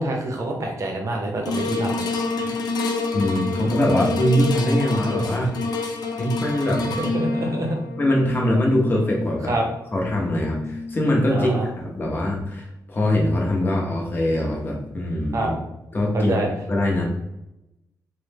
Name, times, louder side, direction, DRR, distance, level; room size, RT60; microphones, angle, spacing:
voice 1, 0.0-2.0 7.0-7.8 9.5-9.7 11.3-11.7 15.3-15.5 16.1-16.5, right 1 dB, 45° right, 1 dB, 0.6 m, -26 dB
sound 1, 1.5-11.9 12.4-12.5, left 3 dB, 70° left, 0.4 m, -28 dB
voice 2, 3.1-5.5 6.2-6.8 8.0-9.5 9.9-15.5 15.9-16.3 16.7-17.0, left 1 dB, 30° left, -1 dB, 0.7 m, -22 dB
3.1 x 2.1 x 3.3 m, 0.89 s
wide cardioid pair, 140°, 7 cm